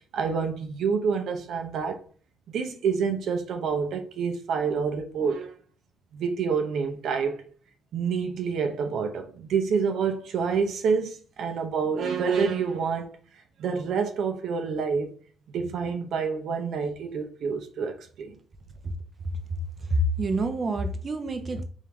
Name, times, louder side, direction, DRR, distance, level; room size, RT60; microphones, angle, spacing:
voice 1, 0.1-2.0 2.5-5.5 6.1-7.4 7.9-13.1 13.6-15.1 15.5-18.3, right 5 dB, 70° right, 0.7 m, -27 dB
voice 2, 19.9-21.6, right 1 dB, 40° right, 0.7 m, -27 dB
3.6 x 3.4 x 3.2 m
cardioid pair, 90°, 0 cm